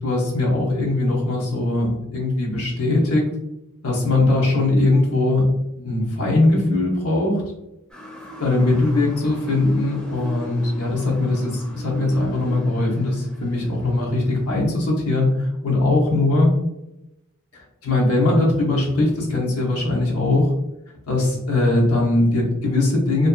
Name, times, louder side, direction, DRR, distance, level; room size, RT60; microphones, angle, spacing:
voice 1, 0.0-3.3 3.8-7.4 8.4-16.6 17.5-20.5 21.1-23.3, left 2 dB, 90° left, -3 dB, 0.8 m, -20 dB
Motor vehicle (road) / Siren, 7.9-14.7, equal, 5° left, 0.5 m, -37 dB
2.6 x 2.2 x 2.3 m, 0.90 s
head